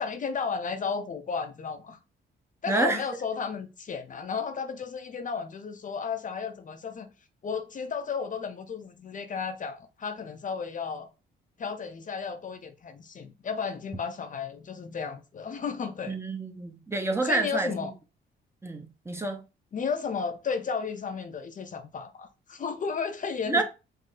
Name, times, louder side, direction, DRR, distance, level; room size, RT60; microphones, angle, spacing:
voice 1, 0.0-2.0 2.6-7.1 7.4-11.1 11.6-16.1 17.2-17.9 19.7-23.6, left 5 dB, 40° left, 0.6 m, -33 dB
voice 2, 2.7-3.0 16.1-17.7 18.6-19.4 23.5-23.6, right 2 dB, 15° right, 0.7 m, -28 dB
5.2 x 2.0 x 3.9 m
cardioid pair, 90°, 20 cm